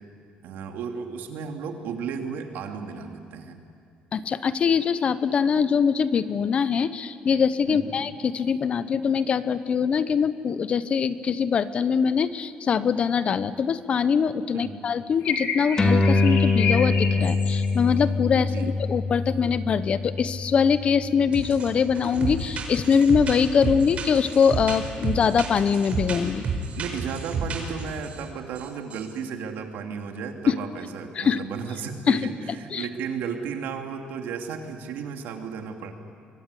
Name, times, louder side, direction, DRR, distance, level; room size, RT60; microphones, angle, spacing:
voice 1, 0.4-3.6 7.7-8.0 14.5-14.8 18.3-18.7 26.7-35.9, right 6 dB, 85° right, 4 dB, 2.9 m, -34 dB
voice 2, 4.1-26.4 30.5-30.6 31.1-31.4 32.1-32.3 32.7-32.9, left 6 dB, 40° left, 14 dB, 0.9 m, -23 dB
sound 1, 15.2-17.7, left 5 dB, 85° left, 4.4 m, -30 dB
sound 2, 15.8-22.6, left 3 dB, 20° left, 2.5 m, -25 dB
sound 3, 21.3-21.7 21.9-28.2 28.6-28.7 28.9-29.1, right 4 dB, 40° right, 4.5 m, -31 dB
24.5 x 23.5 x 9.9 m, 2.3 s
cardioid pair, 160°, 3 cm